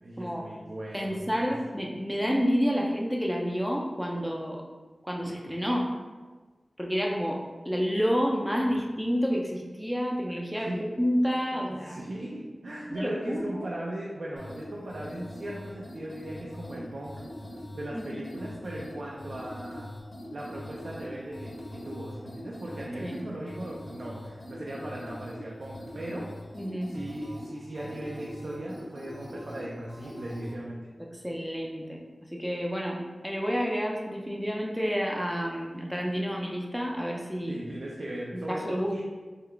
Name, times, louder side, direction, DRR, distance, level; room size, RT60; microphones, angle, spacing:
voice 1, 0.0-1.5 10.5-10.8 11.5-17.2 17.7-19.9 20.3-26.3 26.9-30.9 37.5-39.0, right 1 dB, 70° right, -4 dB, 0.4 m, -38 dB
voice 2, 0.9-4.6 5.0-5.9 6.8-7.4 7.7-12.0 12.9-13.7 17.9-18.0 23.0-23.2 26.6-26.9 31.2-32.0 32.3-37.6 38.3-39.0, equal, ahead, -1 dB, 0.4 m, -29 dB
sound 1, 14.4-30.6, left 1 dB, 55° left, 1.0 m, -42 dB
3.7 x 2.3 x 3.2 m, 1.3 s
wide cardioid pair, 85°, 0 cm